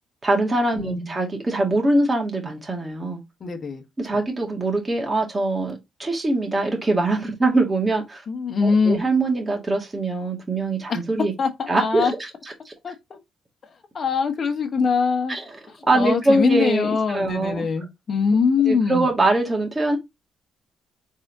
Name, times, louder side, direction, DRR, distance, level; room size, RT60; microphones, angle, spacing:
voice 1, 0.2-3.2 4.0-8.2 8.6-11.3 11.7-12.1 12.7-12.8 15.3-15.4 15.8-17.7 18.7-20.0, right 2 dB, 20° right, 2.0 m, -22 dB
voice 2, 0.8-1.1 3.4-3.8 8.3-9.0 10.9-11.0 11.4-12.1 12.8-13.2 13.6-15.4 15.7-19.1, left 5 dB, 45° left, 1.1 m, -23 dB
4.1 x 3.7 x 2.7 m
cardioid pair, 90°, 0 cm